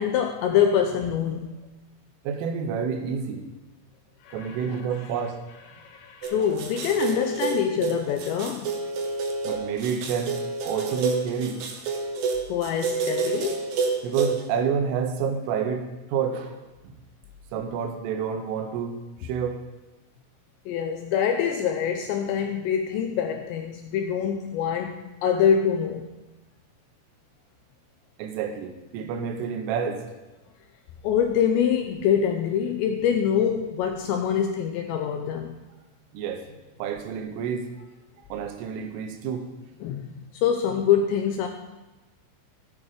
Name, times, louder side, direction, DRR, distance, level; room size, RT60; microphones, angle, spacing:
voice 1, 0.0-1.6 4.2-4.8 5.8-8.7 12.5-13.7 20.7-25.0 25.2-26.1 31.0-35.6 39.8-40.1 40.4-41.5, left 8 dB, 85° left, 4 dB, 2.6 m, -25 dB
voice 2, 2.3-3.5 4.3-5.4 9.5-10.4 10.6-11.6 14.0-16.6 16.9-17.0 17.5-19.6 28.2-30.1 36.1-37.7 38.3-39.5, right 7 dB, 90° right, 6 dB, 3.6 m, -29 dB
sound 1, 6.2-14.4, right 4 dB, 70° right, 2.3 m, -29 dB
14.0 x 8.7 x 5.1 m, 1.1 s
omnidirectional pair, 5.7 m